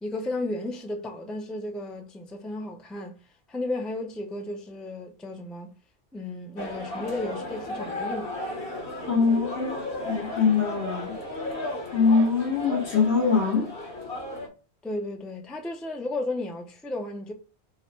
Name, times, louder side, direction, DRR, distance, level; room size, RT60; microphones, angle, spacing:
voice 1, 0.0-3.2 3.5-5.7 6.1-8.3 14.8-17.3, left 2 dB, ahead, 0.4 m, -33 dB
sound 1, 6.6-14.5, left 1 dB, 60° left, 1.3 m, -34 dB
voice 2, 9.1-11.2 11.9-13.7, left 5 dB, 75° left, 1.6 m, -23 dB
4.7 x 2.1 x 4.2 m
omnidirectional pair, 1.1 m